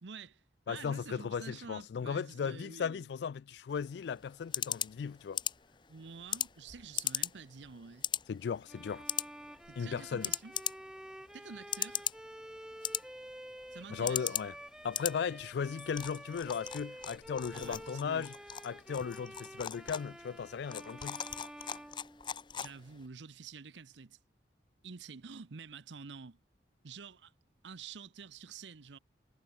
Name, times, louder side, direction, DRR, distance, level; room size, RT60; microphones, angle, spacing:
voice 1, 0.0-3.1 5.9-8.1 9.7-10.5 11.3-12.1 13.7-14.4 17.5-18.3 22.6-24.2 24.8-26.4 26.8-27.3 27.6-29.0, right 5 dB, 85° right, 0.8 m, -48 dB
voice 2, 0.7-5.4 8.3-9.0 9.8-10.3 13.9-14.6 14.8-18.3 18.6-21.2, left 6 dB, 70° left, 0.3 m, -36 dB
sound 1, 3.7-23.1, left 9 dB, 25° left, 0.7 m, -40 dB
Bowed string instrument, 8.7-22.7, right 1 dB, 5° right, 0.4 m, -50 dB
head